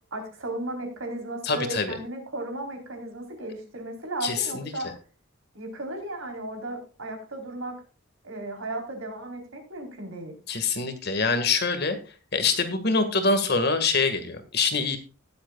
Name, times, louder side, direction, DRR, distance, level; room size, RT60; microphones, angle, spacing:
voice 1, 0.1-4.9 5.5-7.8 8.2-10.3, right 2 dB, 70° right, 3 dB, 3.9 m, -35 dB
voice 2, 1.4-2.0 4.2-4.7 10.5-12.0 12.3-15.0, left 4 dB, 50° left, 8 dB, 1.8 m, -25 dB
19.0 x 8.0 x 2.4 m, 0.35 s
head